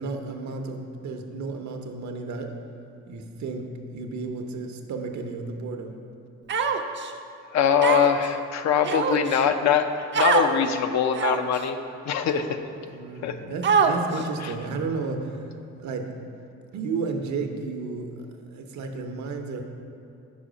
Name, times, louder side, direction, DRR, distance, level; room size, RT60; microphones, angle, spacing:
voice 1, 0.0-2.5 3.1-6.0 12.8-15.4 15.8-16.1 16.7-18.1 18.5-19.6, right 4 dB, 70° right, 4 dB, 0.7 m, -32 dB
Human voice, 6.5-7.1 7.8-8.3 8.8-9.4 10.1-10.5 11.1-11.6 12.3-12.4 13.6-14.2, right 6 dB, 40° right, 0.4 m, -23 dB
voice 2, 7.5-11.8 12.1-12.5 13.2-13.3 14.4-14.5, left 7 dB, 65° left, 8 dB, 0.5 m, -22 dB
5.7 x 4.8 x 5.0 m, 2.7 s
cardioid pair, 90°, 30 cm